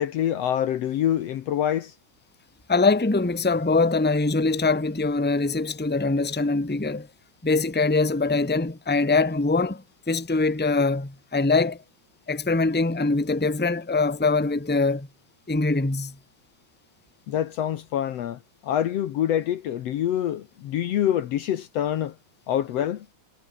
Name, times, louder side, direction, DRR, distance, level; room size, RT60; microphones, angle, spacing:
voice 1, 0.0-1.9 17.3-22.2 22.5-23.1, left 11 dB, 65° left, 2.0 m, -26 dB
voice 2, 2.7-7.1 7.4-11.8 12.3-15.1 15.5-16.1, left 3 dB, 5° left, 1.5 m, -23 dB
omnidirectional pair, 3.4 m